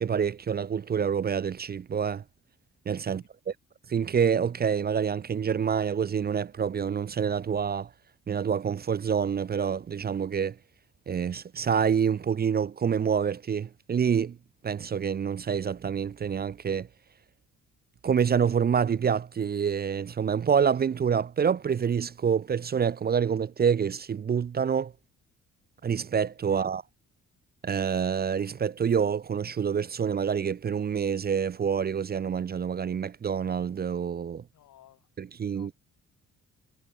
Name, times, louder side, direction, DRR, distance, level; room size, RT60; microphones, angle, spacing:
voice 1, 0.0-2.2 2.9-3.2 3.9-7.9 8.3-10.6 11.1-14.4 14.6-16.9 18.0-24.9 25.8-26.8 27.6-34.4 35.2-35.7, right 7 dB, 30° right, 0.5 m, -27 dB
voice 2, 34.5-35.1 35.5-35.7, left 13 dB, 80° left, 4.0 m, -57 dB
cardioid pair, 90°, 30 cm